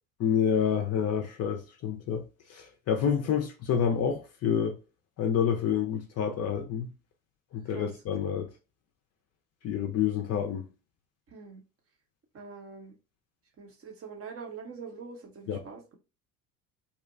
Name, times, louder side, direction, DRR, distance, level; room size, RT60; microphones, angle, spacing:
voice 1, 0.2-2.2 2.5-4.7 5.2-6.9 7.5-8.5 9.6-10.6 15.5-15.6, left 8 dB, 35° left, 0.5 m, -28 dB
voice 2, 11.3-11.6 12.3-12.9 13.6-15.8, right 5 dB, 30° right, 0.7 m, -44 dB
2.8 x 2.2 x 2.4 m
figure-of-eight pair, 60°, 43 cm